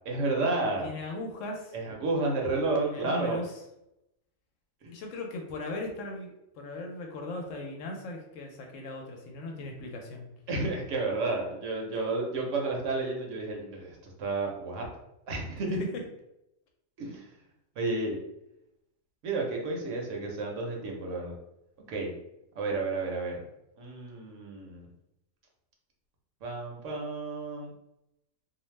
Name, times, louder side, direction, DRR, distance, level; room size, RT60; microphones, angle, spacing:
voice 1, 0.1-0.9 1.7-3.4 4.8-4.9 10.5-14.9 15.3-15.8 17.0-17.2 17.8-18.2 19.2-21.3 21.9-22.1 22.6-23.4 23.8-24.9 26.4-27.7, right 3 dB, 70° right, 0 dB, 1.0 m, -31 dB
voice 2, 0.8-1.7 2.9-3.5 4.9-6.3 6.6-10.3 15.8-15.9, left 2 dB, 70° left, 2 dB, 0.9 m, -38 dB
2.5 x 2.0 x 3.1 m, 0.84 s
omnidirectional pair, 1.4 m